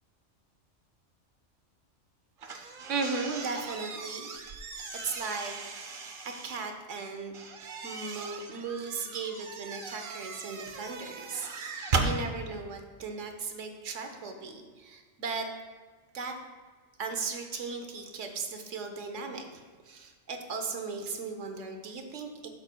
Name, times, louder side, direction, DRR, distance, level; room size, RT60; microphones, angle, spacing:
sound 1, 2.4-6.6 7.3-12.2, right 4 dB, 50° right, 0.8 m, -37 dB
voice 1, 2.4-4.3 4.9-5.6 5.8-7.3 7.8-15.5 16.1-16.4 17.0-22.5, right 4 dB, 80° right, 5 dB, 1.2 m, -37 dB
12.5 x 7.1 x 2.2 m, 1.4 s
omnidirectional pair, 1.2 m